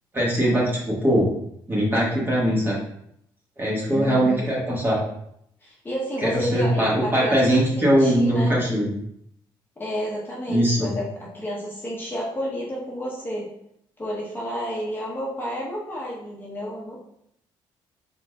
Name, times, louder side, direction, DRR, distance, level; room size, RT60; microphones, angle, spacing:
voice 1, 0.1-1.3 1.7-2.8 3.6-5.0 6.2-8.9 10.5-10.9, equal, 20° right, -5 dB, 1.7 m, -21 dB
voice 2, 3.9-4.6 5.6-7.5 7.8-8.5 9.8-13.5 14.0-17.0, equal, 20° left, -5 dB, 1.1 m, -31 dB
4.4 x 4.0 x 2.4 m, 0.74 s
cardioid pair, 90°, 10 cm